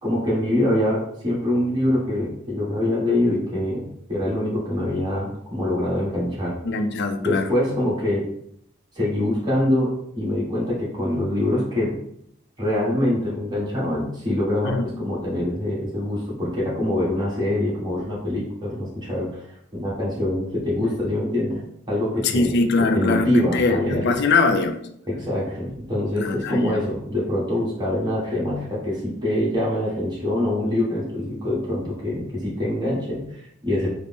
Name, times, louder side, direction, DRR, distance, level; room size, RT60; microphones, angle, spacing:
voice 1, 0.0-6.6 7.2-8.2 8.9-9.9 10.1-12.0 12.6-19.3 19.7-21.6 21.9-22.6 22.9-24.2 25.1-33.9, left 1 dB, 20° right, -7 dB, 1.3 m, -24 dB
voice 2, 6.6-7.5 14.6-14.9 22.2-24.8 26.2-26.8, left 3 dB, 55° left, 7 dB, 0.4 m, -22 dB
3.8 x 2.0 x 3.5 m, 0.72 s
head